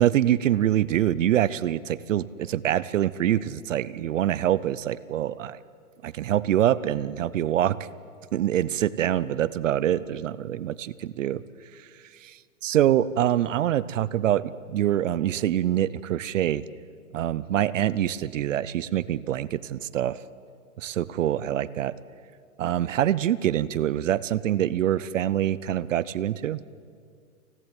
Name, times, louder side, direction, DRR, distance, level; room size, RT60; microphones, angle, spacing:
voice 1, 0.0-5.6 6.0-7.8 8.3-11.4 11.7-11.9 12.1-16.6 17.1-20.2 20.8-21.9 22.6-26.6, right 11 dB, 55° right, 19 dB, 0.7 m, -25 dB
29.0 x 11.0 x 8.9 m, 2.1 s
hypercardioid pair, 155°, 45 cm